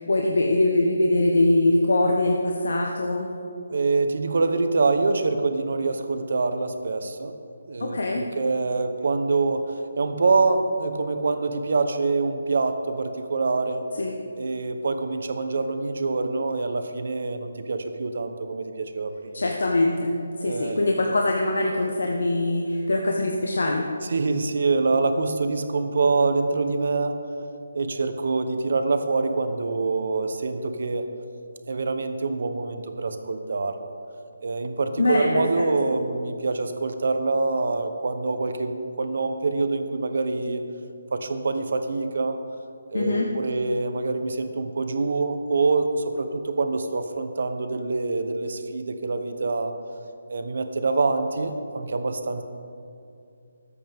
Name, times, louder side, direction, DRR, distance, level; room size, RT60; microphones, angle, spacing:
voice 1, 0.0-3.3 7.8-8.2 14.0-14.2 19.3-20.1 20.4-23.9 35.0-35.4 42.9-43.3, left 2 dB, 75° left, 0 dB, 1.3 m, -22 dB
voice 2, 3.7-7.3 7.7-13.9 14.4-19.4 20.4-20.9 24.1-27.2 27.7-31.0 31.7-33.7 34.4-40.6 41.1-42.4 42.9-49.7 50.3-52.4, right 3 dB, 50° right, 7 dB, 1.0 m, -25 dB
25.0 x 8.4 x 3.7 m, 2.5 s
hypercardioid pair, 175°, 0 cm